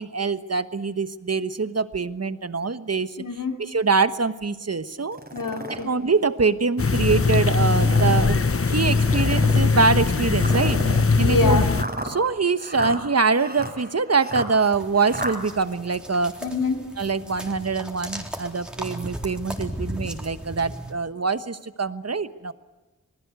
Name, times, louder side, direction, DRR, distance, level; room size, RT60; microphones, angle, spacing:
voice 1, 0.0-3.2 3.6-5.2 5.7-8.4 8.7-10.8 11.2-11.6 12.0-16.3 17.0-22.5, right 4 dB, 50° right, 12 dB, 1.2 m, -24 dB
voice 2, 3.2-3.6 5.3-5.9 11.2-11.7 16.4-16.8, left 3 dB, 80° left, 4 dB, 2.9 m, -25 dB
sound 1, 5.1-5.8 6.5-6.6 7.6-8.3 9.0-9.7 10.4-15.4, right 1 dB, 30° right, 4.2 m, -32 dB
sound 2, 6.8-11.8, left 4 dB, 45° left, 1.0 m, -20 dB
sound 3, 14.7-20.9, equal, 5° right, 3.9 m, -36 dB
27.5 x 19.5 x 8.2 m, 1.1 s
wide cardioid pair, 50°, 32 cm